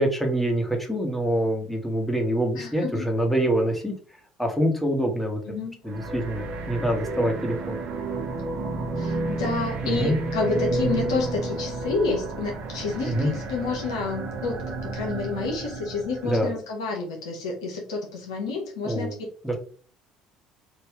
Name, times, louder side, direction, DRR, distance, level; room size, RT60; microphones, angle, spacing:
voice 1, 0.0-3.9 4.4-5.4 5.8-7.8 9.8-10.2 13.0-13.3 16.2-16.5 18.8-19.2 19.4-19.6, right 1 dB, 5° left, 2 dB, 1.2 m, -25 dB
voice 2, 2.6-3.0 5.5-5.8 9.0-19.1, left 3 dB, 90° left, 1 dB, 1.0 m, -29 dB
sound 1, 5.9-16.4, right 2 dB, 60° right, 1.0 m, -31 dB
3.3 x 2.6 x 3.5 m, 0.43 s
hypercardioid pair, 70°, 3 cm